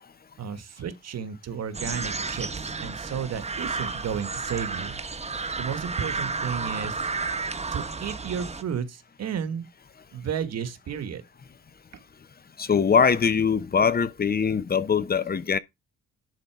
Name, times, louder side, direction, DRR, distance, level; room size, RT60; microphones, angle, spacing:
voice 1, 0.4-5.0 5.6-7.1 7.7-9.7 10.1-11.2, right 7 dB, 55° right, 1.6 m, -33 dB
sound 1, 1.7-8.6, right 4 dB, 20° right, 1.1 m, -32 dB
voice 2, 12.6-15.6, left 6 dB, 30° left, 0.8 m, -22 dB
11.0 x 3.9 x 4.7 m
cardioid pair, 90°, 30 cm